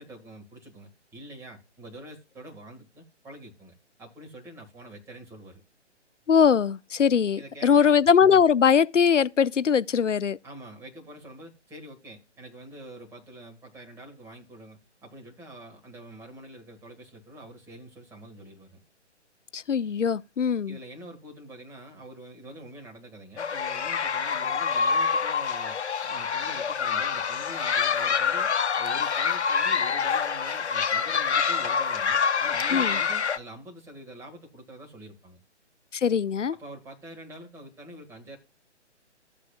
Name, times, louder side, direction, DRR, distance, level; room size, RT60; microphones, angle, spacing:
voice 1, 0.0-5.6 7.4-8.0 10.4-18.8 20.7-28.5 28.8-35.4 36.5-38.4, right 1 dB, 10° right, 1.7 m, -45 dB
voice 2, 6.3-10.4 19.5-20.8 32.7-33.0 35.9-36.6, left 7 dB, 90° left, 0.5 m, -21 dB
sound 1, 23.4-33.4, left 6 dB, 65° left, 0.8 m, -26 dB
14.0 x 8.3 x 2.4 m
figure-of-eight pair, 135°, 36 cm